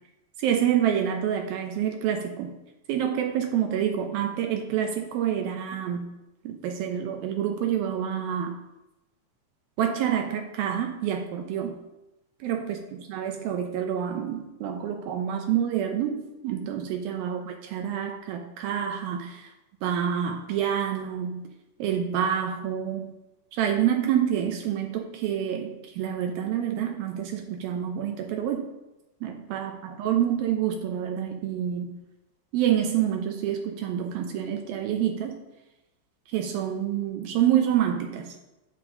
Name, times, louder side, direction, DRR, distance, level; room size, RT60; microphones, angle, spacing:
voice 1, 0.4-2.5 2.9-6.1 6.4-8.6 9.8-11.7 12.4-12.8 13.1-19.5 19.8-21.4 21.8-23.1 23.5-28.7 29.2-31.9 32.5-35.4 36.3-38.4, right 9 dB, 85° right, 4 dB, 2.1 m, -27 dB
10.5 x 7.3 x 3.9 m, 0.96 s
omnidirectional pair, 5.3 m